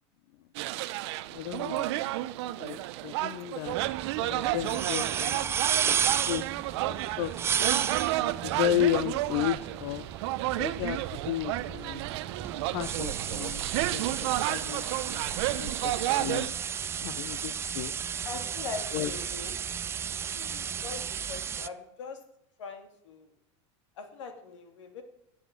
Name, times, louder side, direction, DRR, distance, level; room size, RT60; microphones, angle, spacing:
sound 1, 0.5-16.5, right 16 dB, 65° right, 0.6 m, -32 dB
voice 1, 1.3-1.9 2.6-3.8 4.2-5.6 5.9-6.0 6.3-6.5 7.2-7.3 8.2-10.1 10.6-12.0 12.7-13.6 13.9-14.8 15.5-16.5 17.0-17.9 18.9-19.1 20.3-20.6, left 12 dB, 65° left, 12 dB, 0.7 m, -33 dB
sound 2, 3.7-21.7, right 8 dB, 15° right, 0.3 m, -33 dB
voice 2, 14.6-15.0 18.2-19.5 20.8-22.2 22.6-23.3 24.0-25.0, left 5 dB, 90° left, 6 dB, 2.5 m, -41 dB
11.0 x 7.3 x 7.5 m, 0.85 s
supercardioid pair, 135°, 15 cm